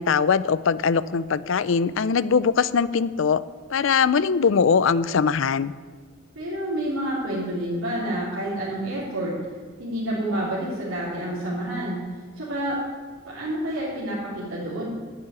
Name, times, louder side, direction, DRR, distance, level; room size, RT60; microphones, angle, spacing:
voice 1, 0.0-3.4 3.7-5.7, left 6 dB, 65° left, 17 dB, 0.4 m, -21 dB
voice 2, 6.3-9.4 9.8-12.0 12.3-12.8 13.2-14.9, right 1 dB, 80° right, -9 dB, 3.3 m, -28 dB
10.5 x 7.4 x 9.5 m, 1.5 s
head